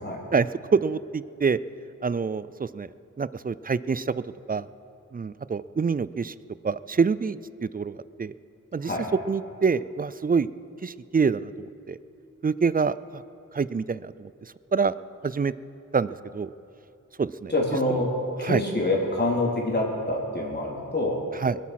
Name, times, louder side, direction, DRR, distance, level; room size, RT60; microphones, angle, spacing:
voice 1, 0.3-1.6 2.0-2.9 3.2-4.2 4.5-4.7 5.1-6.3 6.6-8.3 8.7-8.9 9.3-10.5 10.8-12.0 12.4-13.2 13.5-14.3 14.7-15.0 15.2-15.5 15.9-16.5 17.2-17.5 17.9-18.0 18.4-18.6 21.3-21.6, right 5 dB, 30° right, 17 dB, 0.4 m, -26 dB
voice 2, 17.5-18.1 18.4-21.2, left 2 dB, 30° left, -2 dB, 3.4 m, -26 dB
21.5 x 8.4 x 5.9 m, 2.9 s
cardioid pair, 60°, 32 cm